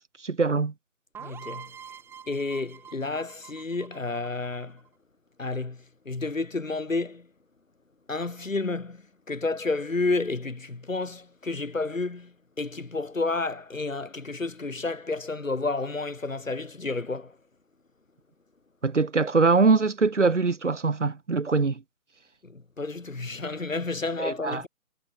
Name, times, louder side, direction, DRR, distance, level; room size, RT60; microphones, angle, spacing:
voice 1, 0.2-0.7 18.8-21.8 24.2-24.6, right 4 dB, 55° right, 3.3 m, -23 dB
sound 1, 1.1-4.9, right 8 dB, 5° right, 5.9 m, -45 dB
voice 2, 1.2-1.7 2.3-4.8 5.4-7.3 8.1-17.4 22.4-24.7, left 3 dB, 60° left, 7.7 m, -31 dB
figure-of-eight pair, 155°, 43 cm